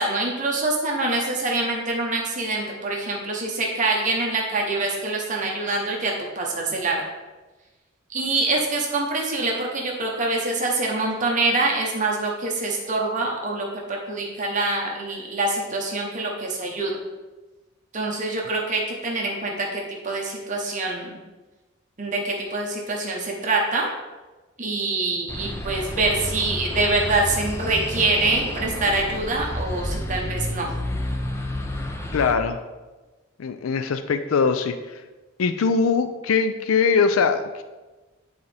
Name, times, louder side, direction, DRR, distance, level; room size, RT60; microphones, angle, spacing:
voice 1, 0.0-7.0 8.1-16.9 17.9-21.2 22.0-23.9 24.6-30.7, right 2 dB, 35° right, -1 dB, 0.9 m, -25 dB
sound 1, 25.3-32.3, left 1 dB, 10° left, 0.5 m, -30 dB
voice 2, 32.1-32.6 33.4-35.0 35.4-37.6, left 5 dB, 80° left, 10 dB, 0.4 m, -22 dB
9.4 x 4.0 x 3.4 m, 1.2 s
head